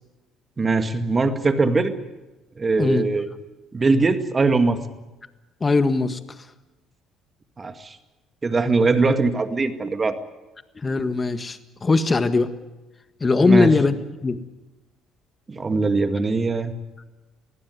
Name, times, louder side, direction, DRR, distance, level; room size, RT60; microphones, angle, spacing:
voice 1, 0.6-2.0 2.6-3.3 3.7-4.8 7.6-8.0 8.4-10.1 13.4-13.7 15.5-16.7, right 3 dB, 30° right, 9 dB, 2.0 m, -21 dB
voice 2, 5.6-6.2 10.8-12.5 13.2-14.0 14.2-14.4, left 3 dB, 30° left, 11 dB, 1.6 m, -20 dB
23.0 x 16.0 x 9.6 m, 1.1 s
supercardioid pair, 70°, 0 cm